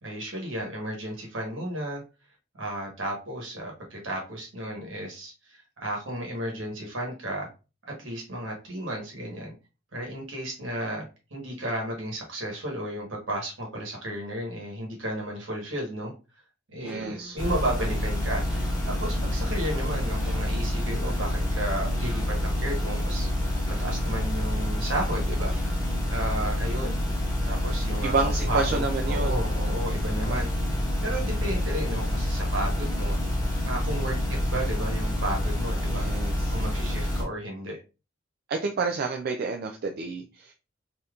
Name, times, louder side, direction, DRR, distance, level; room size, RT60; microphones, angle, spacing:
voice 1, 0.0-2.0 2.5-7.5 8.0-9.5 9.9-11.0 11.3-16.1 16.7-18.4 18.8-23.5 23.8-25.8 26.1-26.9 27.4-30.6 31.0-33.2 33.6-34.2 34.5-36.1 36.5-37.8, right 1 dB, 70° right, 0 dB, 1.2 m, -33 dB
sound 1, 16.8-35.9, equal, 5° right, 1.2 m, -41 dB
voice 2, 16.8-17.4 28.0-29.4 30.2-30.4 35.9-36.6 38.5-40.5, right 4 dB, 50° right, 2 dB, 0.4 m, -30 dB
sound 2, 17.4-37.2, left 1 dB, 20° left, 1.1 m, -27 dB
3.5 x 2.8 x 2.3 m, 0.31 s
head